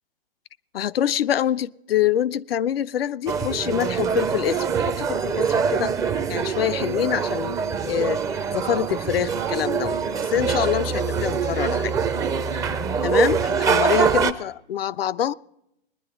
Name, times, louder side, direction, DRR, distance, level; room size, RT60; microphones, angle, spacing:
voice 1, 0.7-5.9 6.3-7.6 7.8-8.2 8.5-11.9 13.0-15.3, left 10 dB, 80° left, 0.5 m, -25 dB
sound 1, 3.3-14.3, right 6 dB, 10° right, 0.4 m, -24 dB
20.5 x 10.5 x 3.7 m
hypercardioid pair, 115°, 29 cm